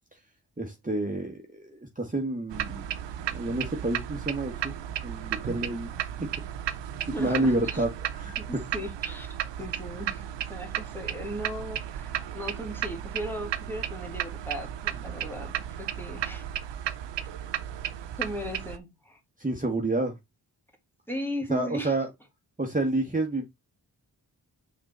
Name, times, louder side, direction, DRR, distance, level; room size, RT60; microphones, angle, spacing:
voice 1, 0.6-2.9 3.3-4.7 5.0-5.9 6.2-6.3 7.2-8.4 19.4-20.1 21.5-22.1 22.6-23.5, right 2 dB, 20° right, 1.4 m, -29 dB
sound 1, 2.5-18.8, right 10 dB, 85° right, 0.7 m, -34 dB
voice 2, 7.1-7.8 8.4-9.3 9.6-16.5 18.2-19.2 21.1-22.0, equal, 5° left, 2.3 m, -37 dB
5.9 x 4.0 x 4.2 m
cardioid pair, 50°, 42 cm